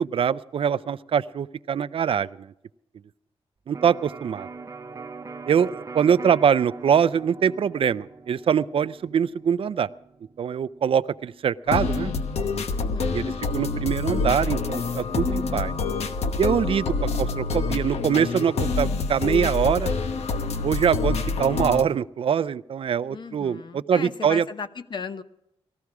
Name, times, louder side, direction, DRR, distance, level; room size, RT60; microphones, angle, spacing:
voice 1, 0.0-2.5 3.7-4.5 5.5-9.9 10.4-12.1 13.1-15.7 16.4-19.9 20.6-24.5, right 8 dB, 60° right, 15 dB, 0.5 m, -23 dB
Electric guitar, 3.7-11.5, right 4 dB, 30° right, 0.8 m, -42 dB
sound 1, 11.7-21.8, left 4 dB, 85° left, 1.0 m, -27 dB
voice 2, 12.7-13.4 23.1-25.2, left 5 dB, 45° left, 10 dB, 1.0 m, -36 dB
19.0 x 14.5 x 4.8 m, 0.81 s
wide cardioid pair, 115°, 11 cm